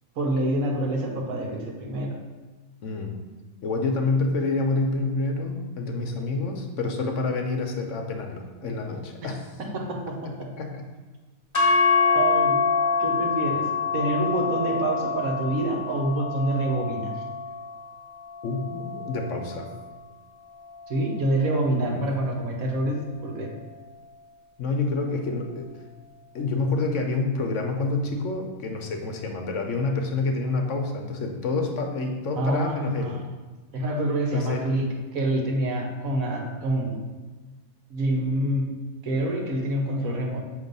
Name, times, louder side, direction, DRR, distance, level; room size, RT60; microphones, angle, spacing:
voice 1, 0.2-2.1 9.7-10.5 12.1-12.6 13.0-13.7 13.9-17.1 20.9-23.5 32.4-33.2 33.7-34.9 35.1-37.0 37.9-38.7 39.0-40.4, right 1 dB, 75° right, 0 dB, 1.4 m, -26 dB
voice 2, 2.8-3.1 3.6-9.5 10.2-10.9 18.4-19.7 21.8-22.0 22.6-22.7 24.6-25.7 26.3-33.2 34.3-34.8, left 3 dB, 65° left, 3 dB, 1.0 m, -28 dB
sound 1, 11.5-19.8, left 5 dB, 20° left, 1.1 m, -26 dB
7.2 x 2.9 x 5.3 m, 1.3 s
omnidirectional pair, 1.5 m